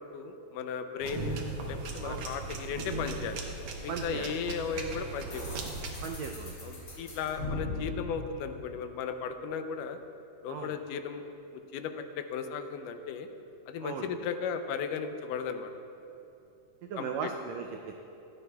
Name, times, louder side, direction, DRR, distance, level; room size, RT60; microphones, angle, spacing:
voice 1, 0.0-3.4 3.8-5.6 6.6-10.0 10.4-11.2 11.5-13.3 13.7-15.7 17.0-17.3, left 6 dB, 85° left, 8 dB, 2.2 m, -36 dB
sound 1, 1.0-6.1, right 3 dB, 65° right, 1.5 m, -38 dB
voice 2, 3.9-4.3 6.0-6.6 7.4-7.9 10.5-10.7 13.8-14.1 16.8-18.0, right 6 dB, 90° right, 4 dB, 1.5 m, -38 dB
sound 2, 5.3-9.2, left 2 dB, 40° left, 2.6 m, -40 dB
16.0 x 12.5 x 2.3 m, 2.8 s
omnidirectional pair, 3.7 m